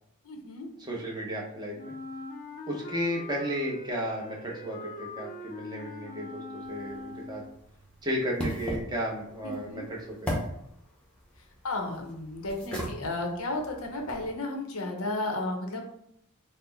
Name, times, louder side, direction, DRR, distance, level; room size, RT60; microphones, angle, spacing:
voice 1, 0.3-0.7 9.4-9.8 11.6-15.9, left 2 dB, 80° left, 2 dB, 0.8 m, -33 dB
voice 2, 0.8-1.9 2.7-7.4 8.0-10.2, equal, 20° right, -2 dB, 0.8 m, -33 dB
Wind instrument woodwind instrument, 1.7-7.6, left 2 dB, 40° left, 0.5 m, -42 dB
sound 1, 6.6-14.3, equal, 5° left, 0.8 m, -39 dB
4.2 x 2.1 x 4.0 m, 0.74 s
head